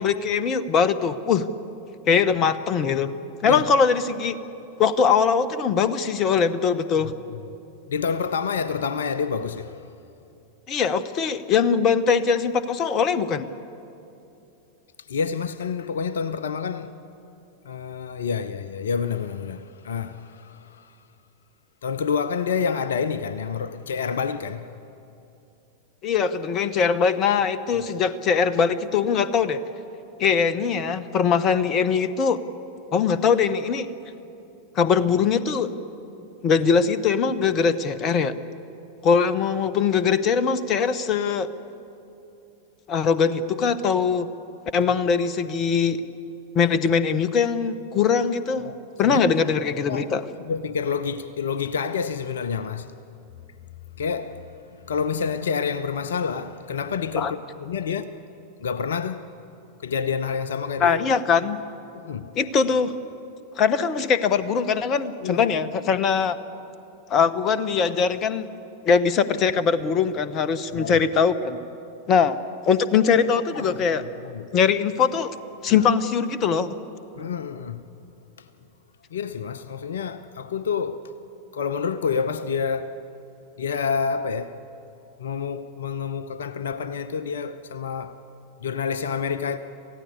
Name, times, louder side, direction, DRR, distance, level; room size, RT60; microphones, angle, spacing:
voice 1, 0.0-1.5 2.1-3.1 3.4-4.4 4.8-7.1 10.7-13.5 26.0-29.6 30.2-32.4 32.9-33.9 34.7-35.7 36.4-38.3 39.0-41.5 42.9-44.3 44.7-46.0 46.5-48.7 49.0-50.2 57.1-57.3 60.8-61.6 62.3-62.9 63.6-66.4 67.1-68.5 68.8-71.6 72.1-72.4 72.7-74.0 74.5-75.3 75.6-76.7, left 6 dB, 30° left, 1.0 m, -21 dB
voice 2, 7.0-7.4 7.9-9.9 15.1-17.0 17.6-21.0 21.8-24.7 48.6-48.8 49.0-49.2 49.9-50.1 50.4-52.9 54.0-58.2 58.6-59.3 59.8-61.0 61.9-62.3 65.2-65.6 70.7-71.1 73.2-73.8 74.2-74.6 75.7-75.9 77.2-77.8 78.4-78.5 79.1-81.1 81.5-82.9 83.6-84.6 85.2-88.2 88.6-89.6, left 6 dB, 65° left, 0.7 m, -28 dB
27.5 x 15.5 x 8.4 m
figure-of-eight pair, 90°, 0 cm